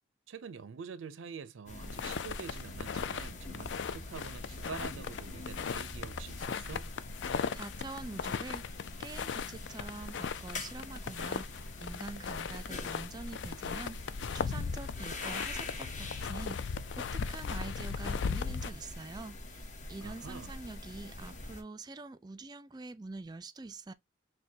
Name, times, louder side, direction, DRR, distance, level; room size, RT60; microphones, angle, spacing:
voice 1, 0.3-6.9 20.0-20.6, right 5 dB, 80° right, 0.5 m, -46 dB
sound 1, 1.7-21.6, left 2 dB, 40° left, 0.8 m, -45 dB
sound 2, 1.8-18.7, left 6 dB, 65° left, 0.4 m, -38 dB
voice 2, 7.5-23.9, right 3 dB, 20° right, 0.3 m, -45 dB
6.3 x 2.2 x 2.7 m
head